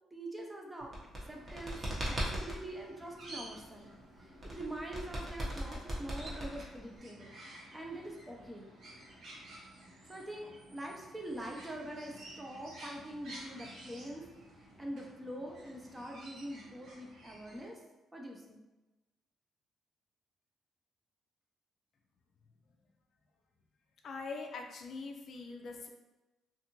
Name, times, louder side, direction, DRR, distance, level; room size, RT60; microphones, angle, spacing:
voice 1, 0.1-0.9 1.3-3.9 4.4-7.3 7.7-8.7 10.1-14.3 14.8-17.8 18.1-18.6, right 1 dB, 15° right, 0 dB, 0.6 m, -44 dB
sound 1, 0.8-2.6 4.4-7.0, equal, 35° right, 0.9 m, -37 dB
sound 2, 1.2-17.7, right 1 dB, 75° right, 1.0 m, -53 dB
voice 2, 24.0-25.9, left 4 dB, 60° left, 3 dB, 0.4 m, -43 dB
2.5 x 2.5 x 2.9 m, 1.1 s
cardioid pair, 90°, 0 cm